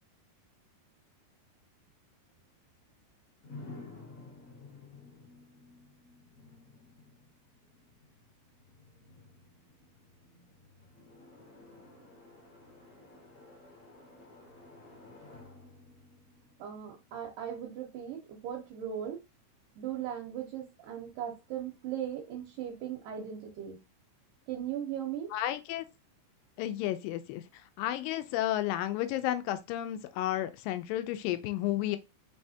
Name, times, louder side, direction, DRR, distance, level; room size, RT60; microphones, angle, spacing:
sound 1, 3.4-17.3, left 3 dB, 50° left, 1.2 m, -53 dB
voice 1, 16.6-19.2 19.8-23.8 24.5-25.3, right 10 dB, 75° right, 2.4 m, -38 dB
voice 2, 25.3-25.8 26.6-27.4 27.8-32.0, left 13 dB, 85° left, 2.3 m, -32 dB
5.5 x 3.4 x 2.7 m
omnidirectional pair, 4.0 m